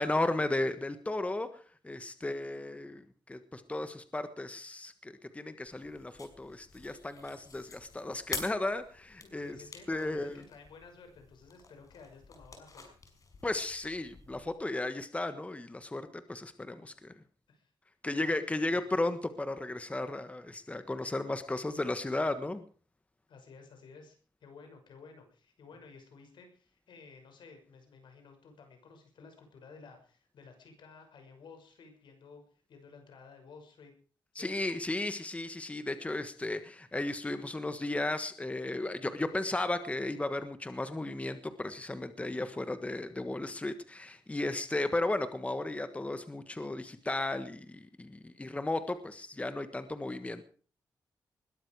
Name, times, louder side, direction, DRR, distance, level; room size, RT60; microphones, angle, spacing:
voice 1, 0.0-9.6 9.9-10.4 13.4-17.1 18.0-22.6 34.3-50.4, left 2 dB, 15° left, 10 dB, 1.4 m, -35 dB
sound 1, 5.6-14.5, left 4 dB, 45° left, 5.6 m, -48 dB
voice 2, 9.2-12.8 17.5-17.7 18.1-19.0 23.3-33.9 34.3-34.5, left 4 dB, 80° left, 6 dB, 6.2 m, -54 dB
21.0 x 13.0 x 4.8 m, 0.42 s
cardioid pair, 95°, 8 cm